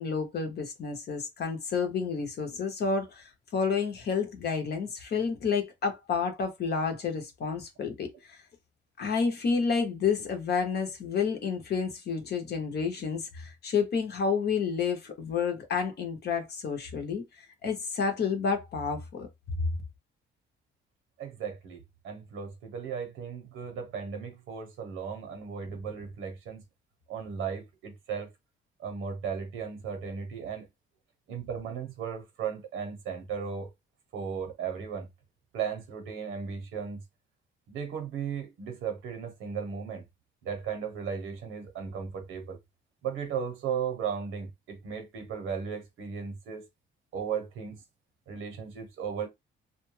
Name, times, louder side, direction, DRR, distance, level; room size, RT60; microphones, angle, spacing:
voice 1, 0.0-8.4 9.0-17.2 17.6-19.3, left 5 dB, 55° left, 0.8 m, -30 dB
voice 2, 21.2-26.6 27.1-28.3 28.8-30.7 31.3-33.7 34.1-35.1 35.5-37.0 37.7-40.0 40.4-42.6 43.0-46.7 47.1-47.8 48.3-49.3, right 6 dB, 80° right, 0.8 m, -36 dB
2.2 x 2.1 x 3.1 m
cardioid pair, 90°, 20 cm